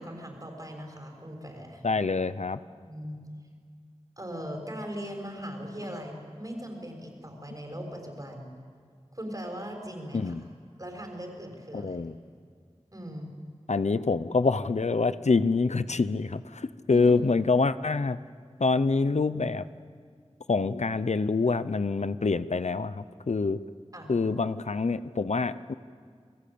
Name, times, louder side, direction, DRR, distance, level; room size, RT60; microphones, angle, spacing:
voice 1, 0.0-1.8 2.8-3.2 4.2-8.5 9.1-10.3 10.8-12.0 12.9-13.3 16.9-17.1 23.9-24.1, equal, 30° right, 2 dB, 6.2 m, -39 dB
voice 2, 1.8-2.6 10.1-10.4 11.7-12.1 13.7-18.2 18.6-19.7 20.5-23.6 24.1-25.7, left 4 dB, 85° left, 13 dB, 0.7 m, -26 dB
29.0 x 20.5 x 8.7 m, 2.1 s
wide cardioid pair, 50°, 11 cm